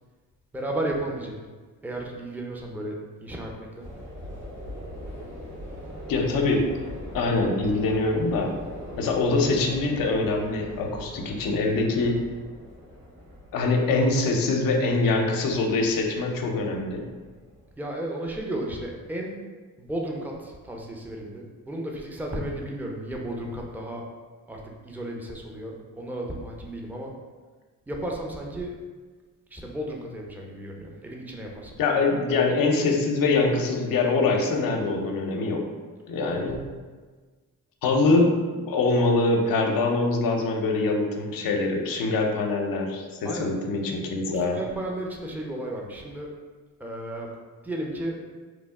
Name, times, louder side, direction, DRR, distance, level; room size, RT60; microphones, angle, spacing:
voice 1, 0.5-1.3 1.8-3.9 17.8-19.4 19.8-24.0 24.5-27.1 27.9-28.7 29.5-31.8 36.2-36.5 43.2-43.6 44.3-46.3 46.8-47.3 47.6-48.2, right 1 dB, 5° right, -1 dB, 0.5 m, -34 dB
sound 1, 3.8-17.7, equal, 85° right, 1.4 m, -41 dB
voice 2, 6.1-6.6 7.1-8.5 9.0-12.2 13.5-17.0 31.8-35.6 36.1-36.5 37.8-44.6, left 3 dB, 70° left, 2 dB, 0.6 m, -24 dB
3.0 x 2.0 x 3.5 m, 1.4 s
supercardioid pair, 50°, 35 cm